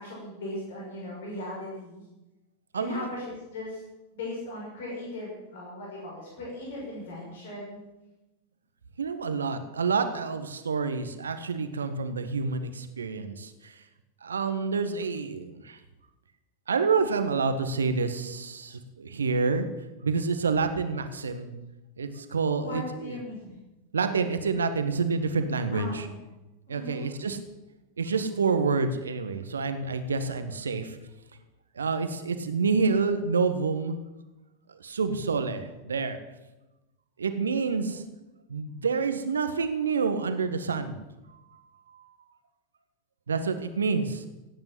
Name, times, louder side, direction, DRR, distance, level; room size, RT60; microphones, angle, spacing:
voice 1, 0.0-2.0 2.7-3.8 4.1-7.8 22.5-23.6 25.7-26.2 26.7-27.1 37.7-38.0, left 1 dB, 60° left, -4 dB, 6.2 m, -38 dB
voice 2, 2.7-3.1 9.0-13.8 14.2-15.8 16.7-19.7 20.0-21.5 22.0-23.2 23.9-26.1 26.7-27.4 28.0-31.0 31.7-34.0 34.7-36.2 37.2-38.0 38.5-41.0 41.9-42.0 43.3-44.3, right 4 dB, 70° right, 9 dB, 1.6 m, -28 dB
17.0 x 9.8 x 7.8 m, 1.0 s
figure-of-eight pair, 90°, 0 cm